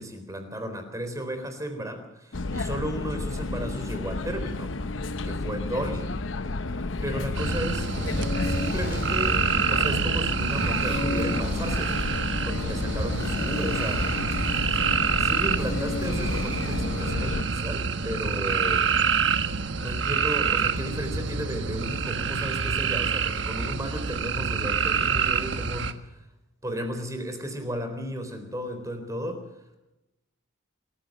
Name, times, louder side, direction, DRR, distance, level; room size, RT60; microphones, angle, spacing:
voice 1, 0.0-4.7 5.2-6.1 7.0-7.9 8.4-9.4 9.7-12.0 12.4-14.1 15.2-18.9 19.8-26.1 26.6-29.4, right 1 dB, 15° right, 7 dB, 4.0 m, -34 dB
sound 1, 2.3-17.4, left 2 dB, 80° left, 0.9 m, -31 dB
sound 2, 7.3-25.9, right 5 dB, 70° right, 1.4 m, -27 dB
sound 3, 7.5-17.3, left 2 dB, 50° left, 1.4 m, -38 dB
27.5 x 14.5 x 6.7 m, 0.96 s
head